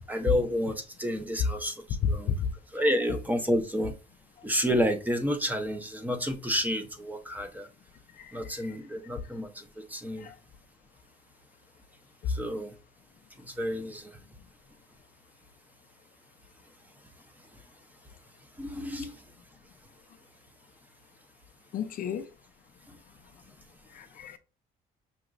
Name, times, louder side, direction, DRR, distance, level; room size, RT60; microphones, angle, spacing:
voice 1, 0.1-1.8 2.1-2.3 2.7-3.9 4.4-7.7 8.3-10.3 12.3-12.7 13.4-14.1 18.6-19.2, equal, 10° right, 0.7 m, -30 dB
voice 2, 2.0-2.4 2.8-3.2 8.2-8.7 10.2-10.3 21.7-22.3 23.9-24.4, left 7 dB, 55° left, 0.5 m, -32 dB
5.7 x 2.9 x 2.5 m
cardioid pair, 110°, 17 cm